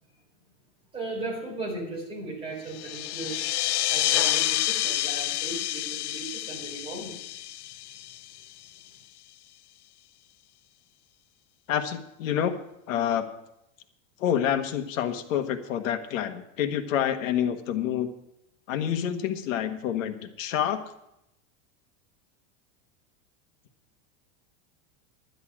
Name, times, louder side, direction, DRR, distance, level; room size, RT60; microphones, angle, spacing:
voice 1, 0.9-3.4 3.9-7.1, right 3 dB, 15° right, -3 dB, 3.8 m, -36 dB
sound 1, 2.7-8.8, left 15 dB, 60° left, 0.5 m, -29 dB
voice 2, 11.7-12.5 12.9-13.3 14.2-18.1 18.7-20.8, left 9 dB, 75° left, 7 dB, 1.6 m, -28 dB
11.0 x 10.5 x 6.1 m, 0.83 s
supercardioid pair, 180°, 39 cm